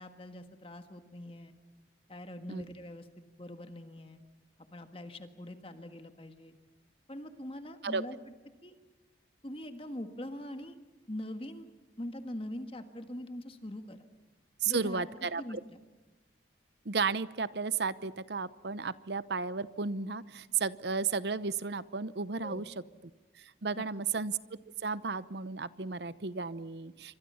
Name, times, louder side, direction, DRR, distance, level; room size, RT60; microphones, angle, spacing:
voice 1, 0.0-1.5 2.1-4.2 4.6-6.5 7.1-8.2 8.6-8.8 9.4-10.8 11.1-11.7 12.0-14.0 14.6-15.8 22.4-22.6 23.7-23.8, left 1 dB, 30° left, 7 dB, 1.6 m, -43 dB
voice 2, 14.6-15.6 16.8-22.7 23.4-24.4 24.8-27.2, right 5 dB, 60° right, 16 dB, 0.8 m, -33 dB
28.5 x 25.0 x 5.7 m, 1.2 s
head